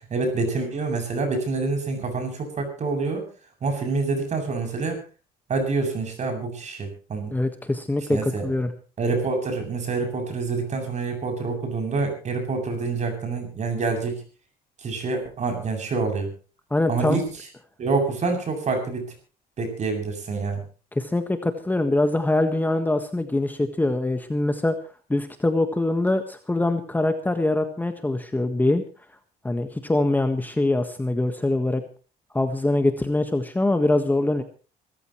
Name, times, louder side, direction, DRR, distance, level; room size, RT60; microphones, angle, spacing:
voice 1, 0.1-3.2 3.6-5.0 5.5-7.3 8.1-8.5 9.0-14.2 14.8-16.3 16.9-17.2 17.8-19.1 19.6-20.6, right 4 dB, 45° right, 4 dB, 7.8 m, -26 dB
voice 2, 7.3-8.7 16.7-17.2 20.9-24.8 25.1-28.8 29.4-31.8 32.3-34.4, left 2 dB, 10° left, 8 dB, 1.6 m, -23 dB
25.0 x 14.5 x 3.2 m, 0.36 s
cardioid pair, 110°, 17 cm